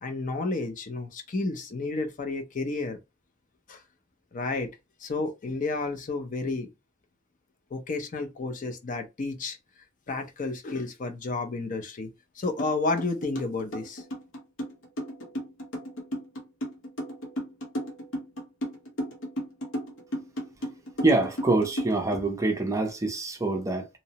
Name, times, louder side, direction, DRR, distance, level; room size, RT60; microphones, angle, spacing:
voice 1, 0.0-3.0 3.7-3.8 4.3-4.7 5.0-6.7 7.7-9.6 10.1-12.1 12.4-14.0, left 3 dB, 40° left, 0.5 m, -31 dB
sound 1, 12.6-12.7 13.0-22.2, equal, 65° left, 1.0 m, -34 dB
voice 2, 21.0-23.9, right 2 dB, 15° right, 0.4 m, -25 dB
2.8 x 2.0 x 2.7 m
head